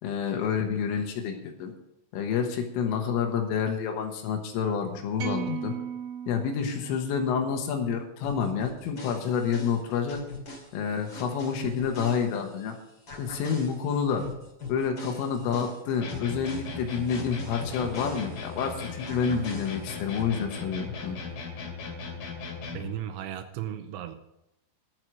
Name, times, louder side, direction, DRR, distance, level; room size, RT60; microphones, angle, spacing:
voice 1, 0.0-1.7 2.1-5.8 6.3-10.2 10.7-12.8 13.2-14.3 14.7-21.2, left 6 dB, 80° left, 4 dB, 3.7 m, -28 dB
sound 1, 5.2-7.6, right 8 dB, 60° right, 2.9 m, -37 dB
sound 2, 8.2-12.7 13.1-18.7 19.1-20.2, left 3 dB, 35° left, 2.1 m, -42 dB
sound 3, 16.0-23.0, left 4 dB, 55° left, 3.6 m, -38 dB
voice 2, 22.7-24.2, right 11 dB, 85° right, 9 dB, 2.9 m, -35 dB
11.5 x 7.8 x 6.3 m, 0.84 s
omnidirectional pair, 5.9 m